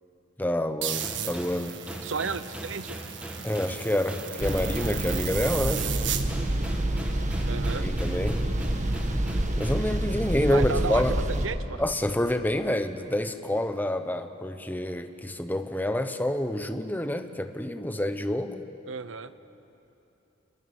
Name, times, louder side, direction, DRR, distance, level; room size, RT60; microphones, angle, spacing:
voice 1, 0.4-1.8 3.4-5.9 7.7-8.4 9.6-11.1 11.8-18.6, left 1 dB, 10° left, 8 dB, 1.1 m, -28 dB
sound 1, 0.8-6.2, right 9 dB, 65° right, 1.6 m, -35 dB
sound 2, 1.0-9.9, equal, 5° right, 2.1 m, -41 dB
voice 2, 2.0-3.0 7.5-7.9 10.5-11.8 18.9-19.3, right 5 dB, 80° right, 14 dB, 0.8 m, -33 dB
sound 3, 4.4-11.5, right 1 dB, 40° right, 1.6 m, -28 dB
28.0 x 22.0 x 9.6 m, 3.0 s
head